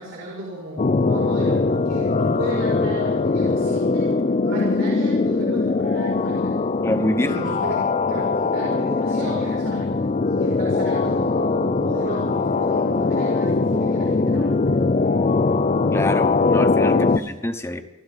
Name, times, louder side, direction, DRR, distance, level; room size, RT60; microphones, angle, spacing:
voice 1, 0.0-4.1 4.4-6.6 7.2-7.8 8.1-15.1 16.9-17.2, equal, 65° right, -5 dB, 5.4 m, -33 dB
sound 1, 0.8-17.2, left 3 dB, 35° left, 0.4 m, -21 dB
voice 2, 6.8-7.4 15.9-17.8, left 1 dB, 10° left, 8 dB, 0.9 m, -26 dB
28.5 x 12.5 x 4.0 m, 1.1 s
head